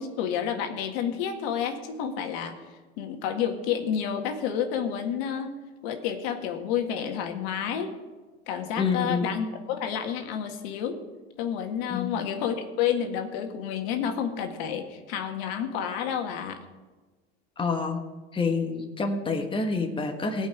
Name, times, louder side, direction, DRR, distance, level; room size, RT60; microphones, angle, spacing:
voice 1, 0.0-2.5 3.0-5.6 5.8-8.0 8.5-11.0 11.4-16.6, left 8 dB, 65° left, 5 dB, 1.8 m, -30 dB
voice 2, 8.8-9.2 11.9-12.2 17.6-18.0 18.3-20.5, left 4 dB, 15° left, 4 dB, 1.5 m, -27 dB
16.5 x 5.5 x 9.7 m, 1.3 s
hypercardioid pair, 100°, 33 cm